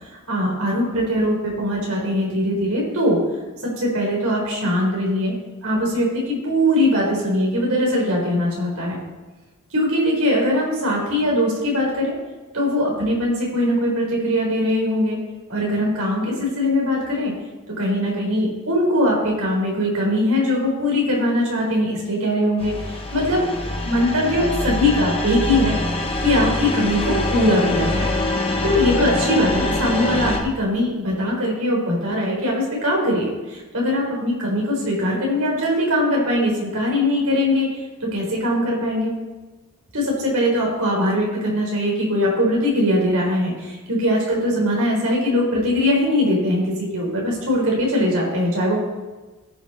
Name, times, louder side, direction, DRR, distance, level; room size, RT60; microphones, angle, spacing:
voice 1, 0.3-3.2 3.6-5.3 5.6-8.9 9.7-12.1 12.5-15.2 15.5-17.3 17.8-23.5 23.8-25.8 26.2-28.1 28.6-37.8 38.0-39.1 39.9-48.8, left 1 dB, 85° right, -2 dB, 4.2 m, -21 dB
sound 1, 22.6-30.4, left 2 dB, 25° left, 1.4 m, -24 dB
17.5 x 6.1 x 4.1 m, 1.2 s
head